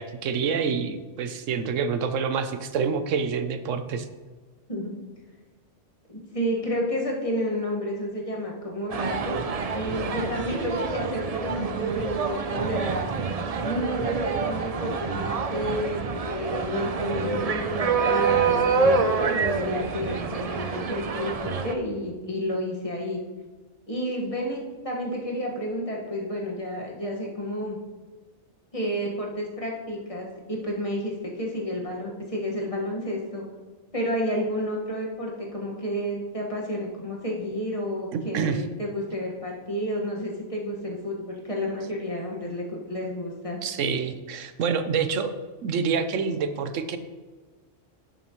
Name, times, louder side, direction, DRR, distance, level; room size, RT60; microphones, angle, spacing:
voice 1, 0.0-4.1 38.3-38.6 43.6-45.3 45.6-47.0, right 6 dB, 90° right, 10 dB, 1.1 m, -27 dB
voice 2, 6.1-9.4 9.7-13.1 13.6-23.2 23.9-27.8 28.7-33.4 33.9-43.6, equal, 30° left, -3 dB, 1.6 m, -31 dB
sound 1, 8.9-21.7, right 5 dB, 50° right, 0.4 m, -27 dB
10.5 x 7.0 x 3.1 m, 1.3 s
omnidirectional pair, 1.3 m